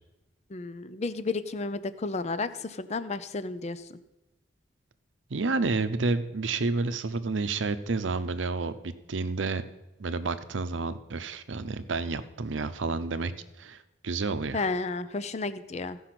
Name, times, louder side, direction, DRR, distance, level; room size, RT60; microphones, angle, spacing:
voice 1, 0.5-4.0 14.5-16.0, left 3 dB, 35° left, 13 dB, 0.5 m, -32 dB
voice 2, 5.3-9.6 10.0-13.3 13.6-13.8 14.0-14.6, right 3 dB, 85° right, 12 dB, 0.7 m, -30 dB
15.0 x 5.5 x 5.9 m, 1.0 s
head